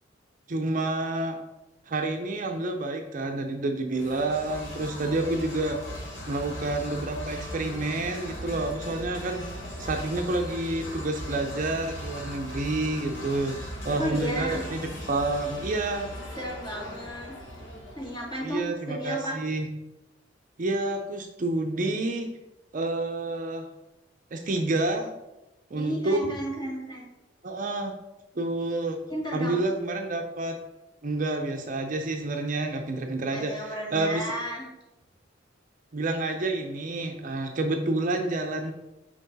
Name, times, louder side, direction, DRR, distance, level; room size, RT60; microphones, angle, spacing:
voice 1, 0.5-1.4 1.9-5.8 6.3-9.4 9.8-14.8 15.1-16.1 18.4-19.7 20.6-22.3 22.7-23.7 24.3-25.1 25.7-26.2 27.4-27.9 28.3-29.0 29.3-30.6 31.0-34.3 35.9-38.7, right 2 dB, 45° right, 4 dB, 0.6 m, -29 dB
sound 1, 3.9-18.6, equal, 85° left, 1.6 m, -38 dB
voice 2, 14.0-14.6 16.4-17.4 18.0-19.4 25.7-27.1 29.1-29.6 33.3-34.7, equal, 20° left, -4 dB, 2.1 m, -33 dB
6.2 x 4.6 x 4.0 m, 0.96 s
head